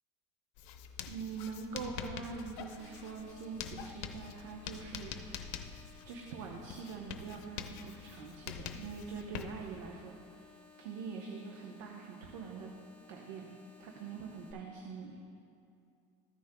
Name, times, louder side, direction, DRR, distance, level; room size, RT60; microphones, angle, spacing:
Writing, 0.6-9.9, left 8 dB, 65° left, 0.6 m, -46 dB
voice 1, 1.1-5.7 6.0-10.5 10.8-12.7 13.1-15.2, right 5 dB, 85° right, 1 dB, 0.9 m, -44 dB
sound 1, 2.8-14.5, left 5 dB, 10° left, 2.1 m, -59 dB
14.0 x 9.5 x 2.2 m, 2.5 s
cardioid pair, 145°, 15 cm